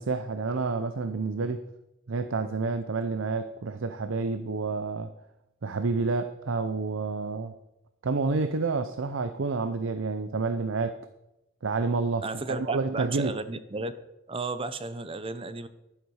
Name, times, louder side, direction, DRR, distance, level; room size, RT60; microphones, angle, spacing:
voice 1, 0.0-1.6 2.1-5.1 5.6-7.6 8.0-11.0 11.6-13.4, right 4 dB, 80° right, 10 dB, 0.6 m, -29 dB
voice 2, 12.2-13.9 14.3-15.7, right 3 dB, 30° right, 12 dB, 0.6 m, -33 dB
11.5 x 10.5 x 4.8 m, 0.92 s
head